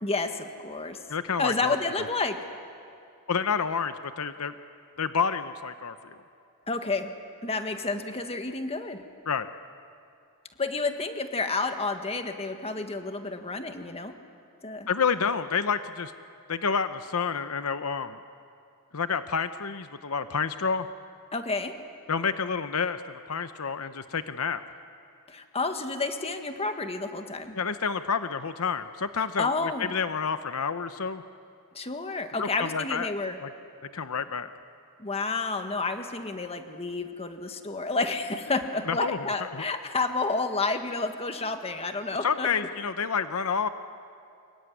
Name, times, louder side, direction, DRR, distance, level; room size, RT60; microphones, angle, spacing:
voice 1, 0.0-1.0 1.4-2.4 6.7-7.1 7.4-9.0 10.6-14.1 14.6-14.9 15.2-15.3 21.3-21.8 25.3-27.6 29.2-29.9 31.7-33.4 35.0-42.5, left 3 dB, 25° left, 6 dB, 1.7 m, -30 dB
voice 2, 1.1-1.8 3.3-4.5 5.0-6.0 9.3-9.5 14.9-16.1 16.5-18.2 18.9-20.9 22.1-24.6 27.5-31.2 32.4-33.1 33.4-33.5 33.9-34.5 38.9-39.6 42.2-43.7, left 6 dB, 75° left, 10 dB, 0.8 m, -29 dB
26.0 x 22.5 x 9.6 m, 2.5 s
head